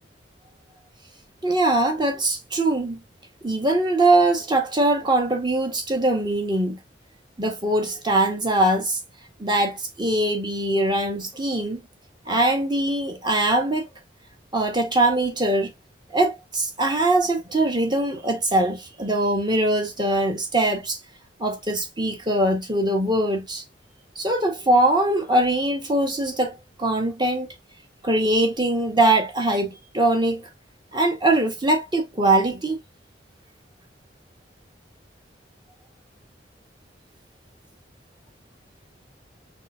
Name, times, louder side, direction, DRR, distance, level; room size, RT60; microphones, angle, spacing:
voice 1, 1.4-3.0 3.4-6.8 7.4-9.0 9.4-11.8 12.3-13.9 14.5-15.7 16.1-21.0 21.4-23.6 24.2-27.5 28.0-30.4 30.9-32.8, right 1 dB, 25° right, 1.7 m, -22 dB
4.4 x 4.3 x 2.7 m
head